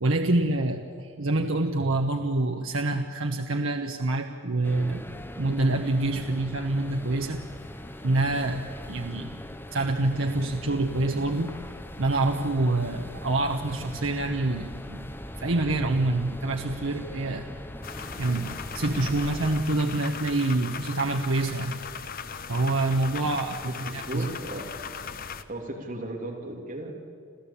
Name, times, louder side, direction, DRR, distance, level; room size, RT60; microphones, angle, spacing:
voice 1, 0.0-5.0 5.3-7.4 8.0-8.6 8.9-9.4 9.7-11.6 12.0-15.1 15.4-17.4 18.2-21.7 22.5-24.3, right 2 dB, 65° right, 4 dB, 1.1 m, -26 dB
sound 1, 4.6-19.6, equal, 10° left, 0.9 m, -40 dB
sound 2, 17.8-25.4, left 6 dB, 45° left, 0.9 m, -38 dB
voice 2, 23.7-24.7 25.0-25.1 25.5-26.9, right 1 dB, 40° right, 1 dB, 3.0 m, -36 dB
27.0 x 15.5 x 8.5 m, 2.3 s
head